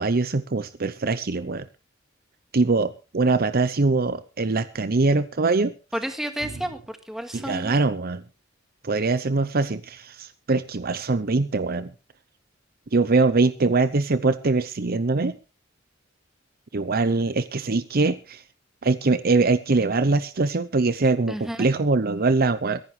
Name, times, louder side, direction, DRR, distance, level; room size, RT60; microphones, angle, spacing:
voice 1, 0.0-1.6 2.5-5.7 7.3-8.2 8.8-11.9 12.9-15.3 16.7-18.4 18.8-22.8, right 3 dB, 50° right, 13 dB, 0.7 m, -22 dB
voice 2, 5.9-7.8 21.3-21.7, right 1 dB, ahead, 6 dB, 1.9 m, -31 dB
24.0 x 11.0 x 3.3 m, 0.31 s
head